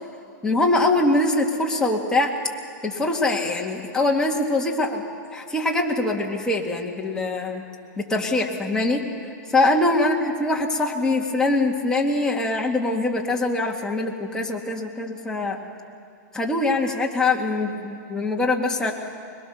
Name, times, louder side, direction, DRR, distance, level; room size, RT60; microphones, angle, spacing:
voice 1, 0.4-2.3 2.8-5.0 5.3-7.6 8.0-9.0 9.5-15.6 16.3-18.9, left 2 dB, 5° left, -1 dB, 2.1 m, -23 dB
22.0 x 22.0 x 6.7 m, 2.4 s
hypercardioid pair, 135°, 10 cm